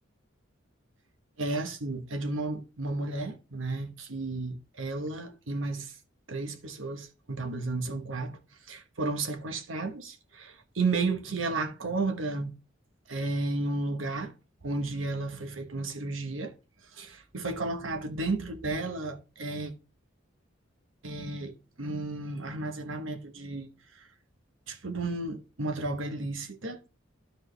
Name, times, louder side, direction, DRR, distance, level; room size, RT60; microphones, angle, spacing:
voice 1, 1.4-5.9 6.3-8.4 8.7-12.5 13.1-14.3 14.6-16.5 16.9-19.7 21.0-23.7 23.9-24.1 24.7-26.9, right 3 dB, 75° right, 1.1 m, -33 dB
12.5 x 4.4 x 3.3 m
head